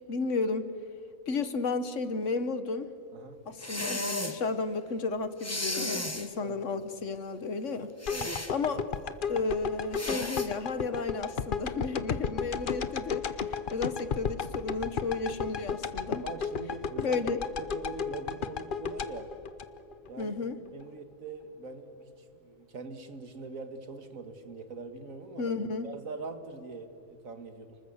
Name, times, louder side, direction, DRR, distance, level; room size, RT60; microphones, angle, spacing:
voice 1, 0.1-0.7 1.3-2.9 3.4-7.9 8.5-8.8 9.3-13.2 13.7-16.2 17.0-17.4 20.2-20.6 25.4-25.9, left 4 dB, 65° left, 11 dB, 1.6 m, -33 dB
sound 1, 3.6-4.4 5.4-6.3 8.0-8.5 9.9-10.5, left 1 dB, 10° left, 1.3 m, -34 dB
sound 2, 8.1-20.2 20.7-20.8, left 6 dB, 45° left, 0.9 m, -34 dB
voice 2, 16.2-17.2 17.6-19.3 20.1-20.4 20.7-25.5 25.8-27.8, right 3 dB, 90° right, 8 dB, 2.3 m, -42 dB
30.0 x 20.0 x 8.0 m, 2.8 s
omnidirectional pair, 1.4 m